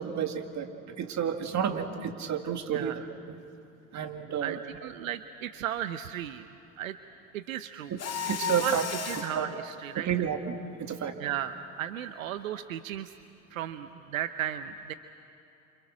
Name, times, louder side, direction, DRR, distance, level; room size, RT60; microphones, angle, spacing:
voice 1, 0.0-3.4 3.9-4.6 7.9-8.8 9.3-9.5 10.0-11.2, right 8 dB, 45° right, 6 dB, 2.4 m, -31 dB
voice 2, 4.4-6.4 6.8-7.0 7.3-7.9 8.4-8.8 9.1-10.1 11.2-13.1 13.5-14.9, right 11 dB, 80° right, 12 dB, 0.8 m, -35 dB
Mechanisms, 8.0-9.4, left 7 dB, 40° left, 2.5 m, -34 dB
29.0 x 27.5 x 6.2 m, 2.9 s
hypercardioid pair, 65°, 40 cm